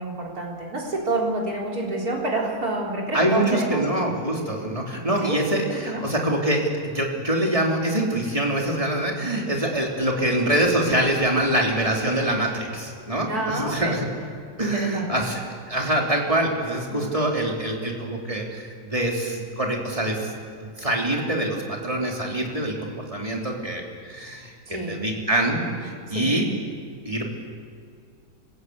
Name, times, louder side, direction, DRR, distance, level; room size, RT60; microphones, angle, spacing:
voice 1, 0.0-3.8 5.2-5.4 5.7-6.0 13.3-14.0 14.6-15.2 16.9-17.1 24.7-25.0 26.1-26.4, right 2 dB, 90° right, -2 dB, 4.5 m, -28 dB
voice 2, 3.1-14.1 14.6-15.4 15.7-20.2 20.6-26.4 27.0-27.3, right 1 dB, 20° right, -1 dB, 3.3 m, -25 dB
27.0 x 16.0 x 8.2 m, 2.3 s
omnidirectional pair, 1.6 m